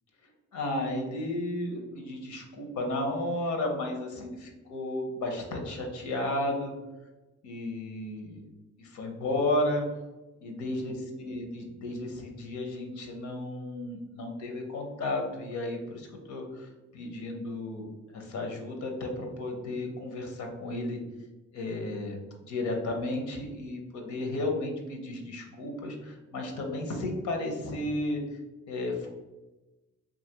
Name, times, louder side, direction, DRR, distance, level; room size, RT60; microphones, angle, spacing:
voice 1, 0.5-6.7 7.4-8.4 8.8-9.8 10.4-17.8 18.1-21.0 21.5-22.2 22.4-28.2 28.7-29.1, left 1 dB, 70° left, 2 dB, 0.7 m, -33 dB
2.8 x 2.5 x 2.8 m, 1.1 s
cardioid pair, 90°, 30 cm